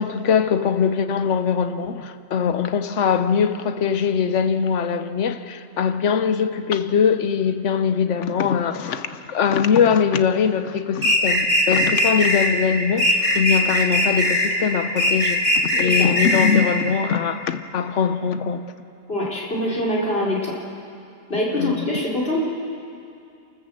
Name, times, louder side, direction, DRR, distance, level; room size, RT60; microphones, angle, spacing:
voice 1, 0.0-15.5 15.7-18.7 21.5-21.9, left 7 dB, 75° left, 1.2 m, -21 dB
sound 1, 11.0-12.5 13.0-14.5 15.0-16.6, left 1 dB, 35° right, 3.4 m, -19 dB
voice 2, 19.1-20.5 21.3-22.4, left 1 dB, 50° left, 4.0 m, -24 dB
28.5 x 14.0 x 7.5 m
omnidirectional pair, 1.3 m